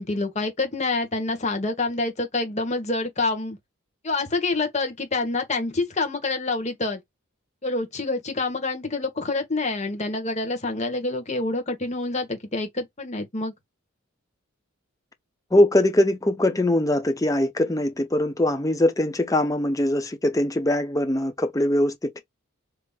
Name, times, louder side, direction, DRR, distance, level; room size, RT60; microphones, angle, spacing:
voice 1, 0.0-3.6 4.0-7.0 7.6-13.5, left 3 dB, 35° left, 1.1 m, -27 dB
voice 2, 15.5-22.2, left 1 dB, 15° left, 0.6 m, -22 dB
3.5 x 2.9 x 2.3 m
head